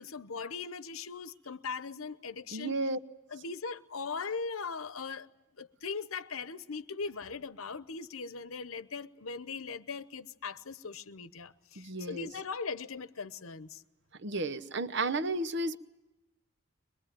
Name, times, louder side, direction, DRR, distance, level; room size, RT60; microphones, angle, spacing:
voice 1, 0.0-2.7 3.3-5.3 5.6-13.8, left 4 dB, 85° left, 0.9 m, -39 dB
voice 2, 2.5-3.0 11.8-12.3 14.1-15.8, right 2 dB, 55° right, 0.9 m, -33 dB
23.0 x 22.5 x 9.1 m
head